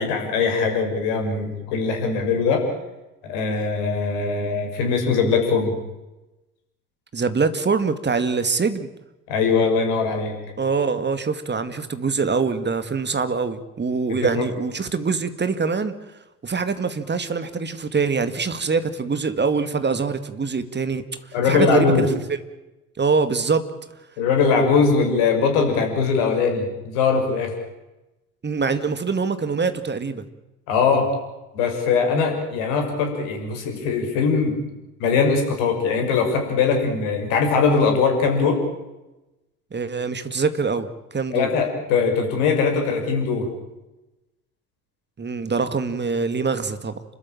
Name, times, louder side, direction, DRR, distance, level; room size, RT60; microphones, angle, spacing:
voice 1, 0.0-2.6 3.2-5.7 9.3-10.4 14.1-14.4 21.3-22.0 24.2-27.5 30.7-31.1 31.5-34.6 35.0-38.6 41.3-43.5, left 5 dB, 65° left, 4 dB, 6.1 m, -21 dB
voice 2, 7.1-8.9 10.6-15.9 16.4-21.0 21.5-22.2 23.0-23.7 28.4-30.3 39.7-41.5 45.2-47.0, right 4 dB, 25° right, 11 dB, 2.2 m, -24 dB
30.0 x 13.0 x 9.0 m, 1.0 s
figure-of-eight pair, 55°, 45 cm